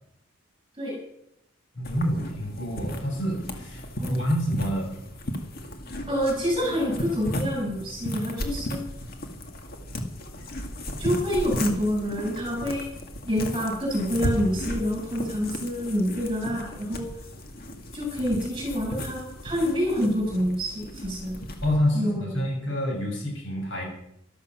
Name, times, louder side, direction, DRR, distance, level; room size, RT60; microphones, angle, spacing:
voice 1, 1.8-5.0 21.6-23.8, equal, 60° left, 0 dB, 6.9 m, -27 dB
sound 1, 1.8-21.8, left 1 dB, 45° left, 2.0 m, -35 dB
voice 2, 6.1-8.8 11.0-12.8 13.2-17.1 17.9-21.4 21.9-22.4, equal, 25° right, -1 dB, 7.5 m, -27 dB
14.0 x 13.5 x 6.1 m, 0.77 s
head